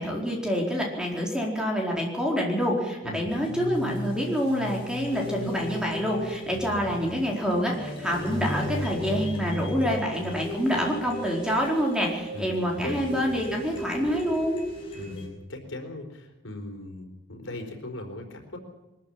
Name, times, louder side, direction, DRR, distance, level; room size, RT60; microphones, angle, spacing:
voice 1, 0.0-14.6, equal, 5° right, -1 dB, 4.4 m, -27 dB
voice 2, 3.0-3.4 12.3-13.1 14.9-18.6, left 1 dB, 90° left, 4 dB, 4.3 m, -38 dB
sound 1, 3.3-15.3, equal, 30° left, 7.0 m, -35 dB
22.0 x 14.0 x 8.8 m, 1.0 s
head